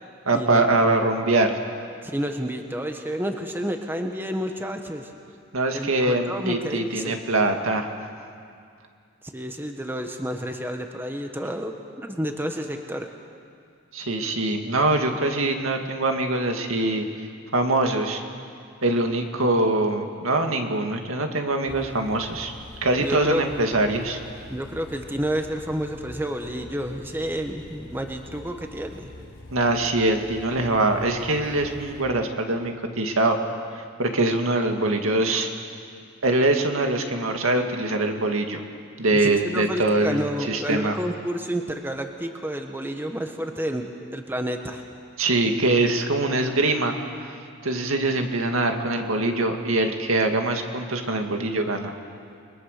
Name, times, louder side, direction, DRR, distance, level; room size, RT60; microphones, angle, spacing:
voice 1, 0.3-1.6 5.5-7.9 13.9-17.0 17.5-18.2 18.8-22.5 22.8-24.2 29.5-33.4 34.0-35.5 36.2-38.6 39.0-40.9 45.2-46.9 47.2-47.3 47.6-52.0, right 2 dB, 75° right, 4 dB, 2.1 m, -23 dB
voice 2, 2.0-5.1 5.7-7.2 9.2-13.1 23.0-23.4 24.5-29.1 39.1-44.8, equal, 10° right, 4 dB, 1.2 m, -30 dB
sound 1, 21.7-32.0, left 2 dB, 60° left, 3.3 m, -45 dB
29.5 x 21.5 x 6.7 m, 2.3 s
head